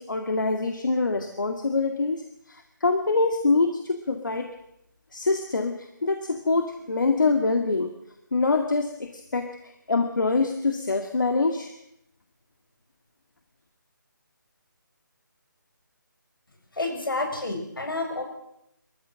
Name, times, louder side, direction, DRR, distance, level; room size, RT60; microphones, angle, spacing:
voice 1, 0.0-4.5 5.1-7.9 8.3-9.5 9.9-11.7, left 3 dB, 65° left, 5 dB, 2.1 m, -25 dB
voice 2, 16.8-18.2, left 2 dB, 85° left, 4 dB, 7.2 m, -29 dB
23.5 x 14.5 x 7.7 m, 0.82 s
hypercardioid pair, 180°, 11 cm